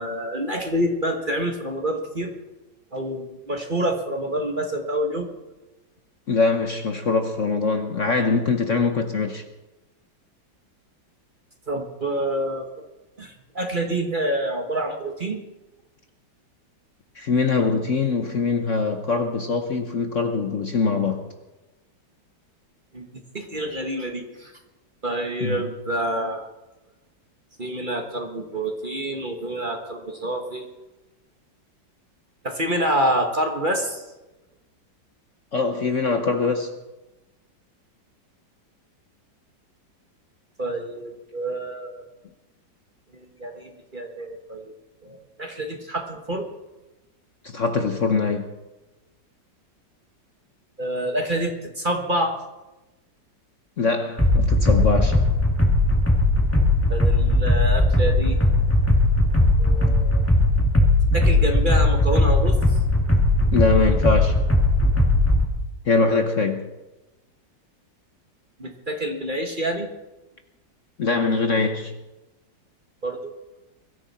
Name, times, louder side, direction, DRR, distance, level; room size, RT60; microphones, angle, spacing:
voice 1, 0.0-2.3 2.9-5.3 11.7-12.7 13.2-15.4 22.9-23.0 23.3-24.5 25.0-26.4 27.6-30.7 32.4-34.0 40.6-42.0 43.1-44.7 45.0-46.5 50.8-52.4 56.9-58.4 59.6-60.2 61.1-62.6 68.6-69.9 73.0-73.3, right 1 dB, 30° right, 1.4 m, -27 dB
voice 2, 6.3-9.4 17.1-21.2 25.4-25.6 35.5-36.7 47.4-48.5 53.8-55.2 59.9-60.0 63.5-64.4 65.8-66.7 71.0-71.9, left 4 dB, 50° left, 1.1 m, -23 dB
sound 1, 54.2-65.4, left 1 dB, 5° left, 2.3 m, -18 dB
22.5 x 14.0 x 4.3 m
omnidirectional pair, 2.0 m